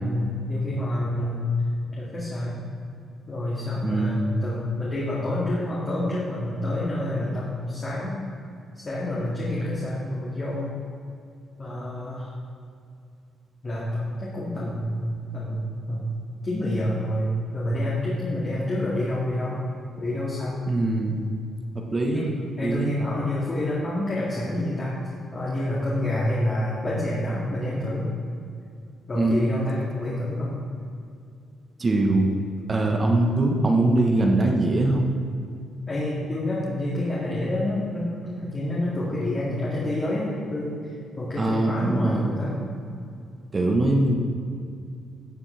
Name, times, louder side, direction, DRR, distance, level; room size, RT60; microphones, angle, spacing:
voice 1, 0.0-1.5 1.9-2.6 3.3-8.2 8.7-10.7 11.6-12.3 13.6-16.1 16.4-19.6 20.0-20.6 22.1-22.3 22.6-24.9 25.3-28.1 29.1-30.6 35.9-42.6, left 1 dB, 35° left, -7 dB, 2.2 m, -28 dB
voice 2, 3.8-4.2 20.7-21.2 21.7-22.2 22.6-22.9 29.1-29.5 31.8-32.3 32.7-35.1 41.4-42.3 43.5-44.2, right 2 dB, 30° right, 1 dB, 1.2 m, -22 dB
13.0 x 7.2 x 3.5 m, 2.4 s
cardioid pair, 90°, 0 cm